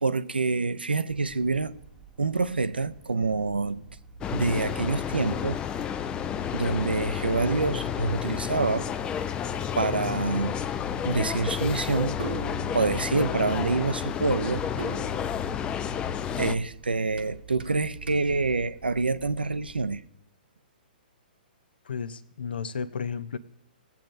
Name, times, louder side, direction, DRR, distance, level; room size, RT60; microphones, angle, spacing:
voice 1, 0.0-1.7 2.2-3.8 4.3-5.6 6.5-8.9 9.8-10.6 11.0-12.2 12.7-14.6 16.4-20.0, right 3 dB, 90° right, 0.5 m, -26 dB
sound 1, 1.1-20.0, right 5 dB, 10° right, 1.0 m, -51 dB
sound 2, 4.2-16.6, left 8 dB, 20° left, 0.3 m, -31 dB
sound 3, 9.7-19.4, right 6 dB, 70° right, 0.9 m, -45 dB
voice 2, 21.8-23.4, left 6 dB, 70° left, 0.6 m, -33 dB
18.5 x 7.6 x 2.5 m
figure-of-eight pair, 120°, 5 cm